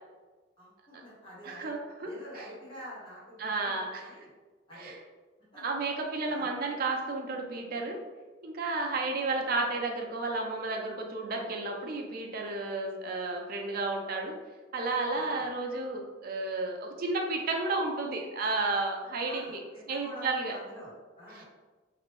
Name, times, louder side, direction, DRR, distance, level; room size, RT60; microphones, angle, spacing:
voice 1, 0.6-1.7 2.0-4.3 4.7-4.9 5.5-5.6 6.3-6.5 15.1-15.5 19.2-21.4, equal, 25° left, -9 dB, 1.3 m, -47 dB
voice 2, 1.4-2.5 3.4-4.1 4.7-5.0 5.6-8.0 8.4-14.3 14.7-19.6 19.9-20.5 21.3-21.4, right 3 dB, 50° right, 1 dB, 0.4 m, -32 dB
3.0 x 2.5 x 3.1 m, 1.3 s
head